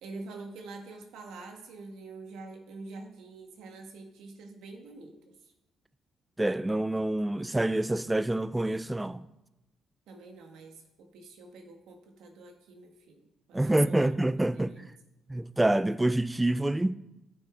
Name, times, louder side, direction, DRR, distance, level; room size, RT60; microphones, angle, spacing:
voice 1, 0.0-5.5 10.1-14.1 14.5-14.9, right 3 dB, 85° right, 1.3 m, -46 dB
voice 2, 6.4-9.2 13.5-14.9 15.3-17.0, right 1 dB, 10° right, 0.3 m, -27 dB
9.3 x 6.4 x 4.9 m
cardioid pair, 90°, 0 cm